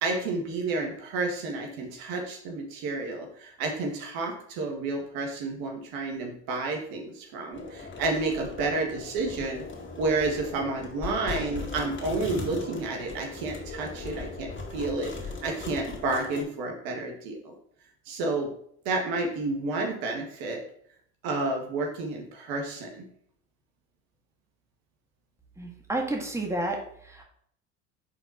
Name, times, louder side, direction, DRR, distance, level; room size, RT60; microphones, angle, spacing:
voice 1, 0.0-9.6 10.0-17.6 18.1-18.5 18.9-20.6 21.2-23.1, right 3 dB, 70° right, 2 dB, 1.7 m, -30 dB
sound 1, 7.5-16.4, left 3 dB, 30° left, 2.2 m, -39 dB
voice 2, 25.6-27.2, right 2 dB, 5° right, 1 dB, 1.8 m, -31 dB
5.7 x 4.2 x 5.7 m, 0.64 s
hypercardioid pair, 70°, 37 cm